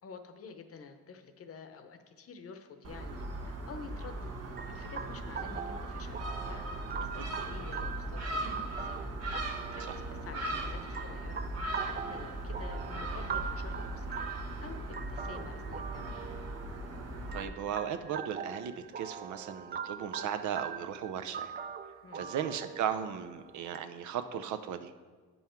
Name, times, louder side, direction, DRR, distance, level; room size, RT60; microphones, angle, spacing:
voice 1, 0.0-4.3 4.6-9.0 9.7-11.5 11.8-14.1 14.6-16.2 22.0-22.3, left 5 dB, 50° left, 8 dB, 0.8 m, -49 dB
Gull seagull, 2.8-17.4, right 1 dB, 55° right, 1.2 m, -38 dB
sound 1, 4.6-23.8, right 7 dB, 30° right, 0.4 m, -43 dB
voice 2, 17.3-21.6 22.1-24.9, right 8 dB, 75° right, 9 dB, 0.6 m, -36 dB
9.3 x 5.5 x 4.4 m, 1.5 s
cardioid pair, 90°, 30 cm